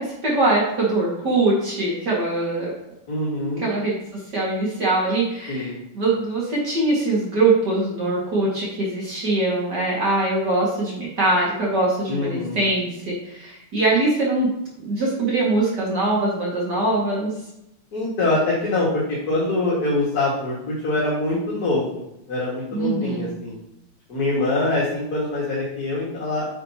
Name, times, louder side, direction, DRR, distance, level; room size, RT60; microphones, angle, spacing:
voice 1, 0.0-2.7 3.6-14.5 14.8-17.3 22.7-23.3, right 2 dB, 50° right, -5 dB, 2.6 m, -22 dB
voice 2, 3.1-3.6 5.5-5.8 12.1-12.7 17.9-22.0 22.3-23.5 24.1-26.5, left 2 dB, 45° left, -6 dB, 2.3 m, -24 dB
10.0 x 6.6 x 2.9 m, 0.83 s
omnidirectional pair, 2.3 m